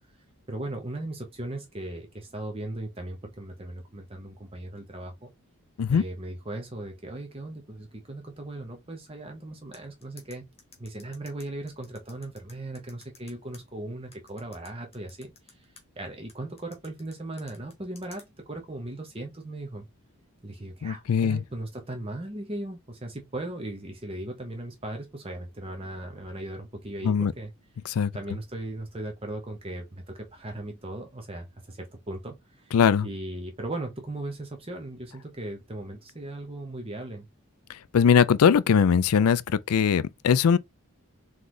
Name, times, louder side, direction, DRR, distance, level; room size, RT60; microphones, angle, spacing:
voice 1, 0.5-5.3 5.9-10.5 10.8-19.9 20.4-27.5 28.1-32.7 33.0-37.3, right 1 dB, 25° right, 0.9 m, -38 dB
sound 1, 9.7-13.6 14.1-15.8 16.3-18.3, left 5 dB, 25° left, 1.3 m, -52 dB
voice 2, 20.8-21.4 27.0-27.3 27.9-28.1 32.7-33.1 37.9-40.6, left 7 dB, 80° left, 0.4 m, -21 dB
3.9 x 3.0 x 3.8 m
head